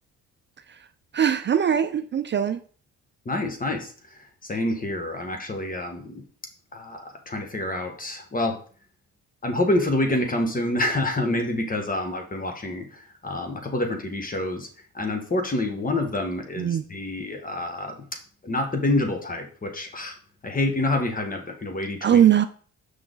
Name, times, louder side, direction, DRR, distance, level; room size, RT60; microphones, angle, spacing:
voice 1, 1.1-2.6 16.6-16.8 22.0-22.4, right 9 dB, 40° right, 10 dB, 0.4 m, -20 dB
voice 2, 3.2-3.9 4.5-6.2 6.7-8.6 9.4-14.7 14.9-17.9 18.4-20.2 20.4-22.2, left 1 dB, 30° left, 4 dB, 1.6 m, -27 dB
6.2 x 5.6 x 3.9 m, 0.43 s
cardioid pair, 90°, 30 cm